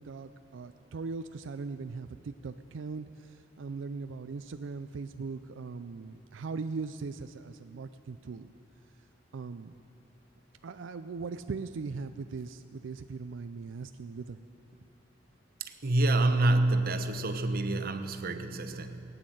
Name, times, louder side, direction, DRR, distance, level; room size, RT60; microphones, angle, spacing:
voice 1, 0.0-8.5 9.3-9.7 10.6-14.4, right 4 dB, 90° right, 9 dB, 0.4 m, -39 dB
voice 2, 15.6-19.0, right 2 dB, 55° right, 8 dB, 0.9 m, -27 dB
18.5 x 9.5 x 7.8 m, 2.6 s
head